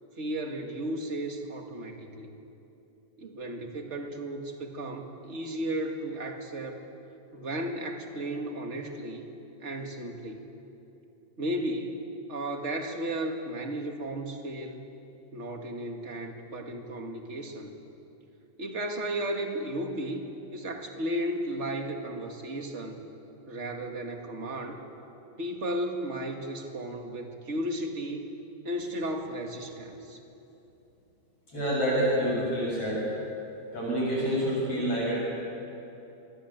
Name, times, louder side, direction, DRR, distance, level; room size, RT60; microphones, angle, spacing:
voice 1, 0.2-2.3 3.2-6.8 7.3-9.2 9.6-10.4 11.4-12.0 12.3-14.8 15.3-17.7 18.6-20.3 20.5-23.0 23.5-24.8 25.4-28.3 28.6-30.2, right 1 dB, 30° right, 3 dB, 1.6 m, -34 dB
voice 2, 31.5-33.0 33.7-35.2, equal, 45° left, -6 dB, 8.2 m, -27 dB
27.0 x 22.0 x 8.2 m, 2.9 s
omnidirectional pair, 3.9 m